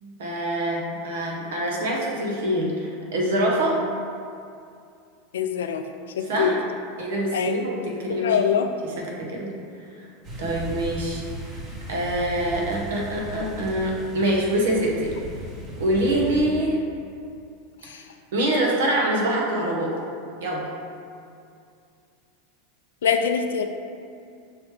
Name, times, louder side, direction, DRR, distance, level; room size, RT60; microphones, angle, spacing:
voice 1, 0.0-3.8 6.2-6.6 7.0-8.4 8.8-9.5 10.0-10.1 10.4-11.2 11.9-15.1 15.8-16.8 18.3-20.0 20.4-20.7, right 1 dB, 80° right, -2 dB, 0.8 m, -25 dB
voice 2, 5.3-5.8 6.2-6.5 7.3-7.5 8.1-8.7 17.9-18.0 23.0-23.7, left 7 dB, 85° left, 7 dB, 0.3 m, -23 dB
sound 1, 10.2-16.4, right 2 dB, 40° right, 1.2 m, -37 dB
4.9 x 2.9 x 3.2 m, 2.4 s
hypercardioid pair, 115°, 0 cm